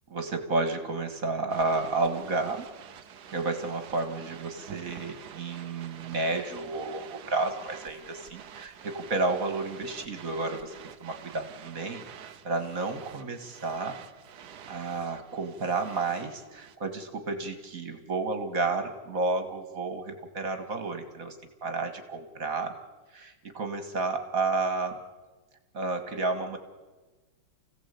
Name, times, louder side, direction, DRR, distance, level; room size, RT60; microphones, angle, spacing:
voice 1, 0.1-2.7 3.3-10.7 11.0-14.0 14.7-21.4 21.6-22.8 23.1-25.0 25.7-26.6, right 3 dB, 40° right, 7 dB, 2.2 m, -31 dB
sound 1, 1.5-16.8, right 8 dB, 55° right, 1.4 m, -48 dB
29.0 x 16.5 x 8.5 m, 1.3 s
omnidirectional pair, 2.4 m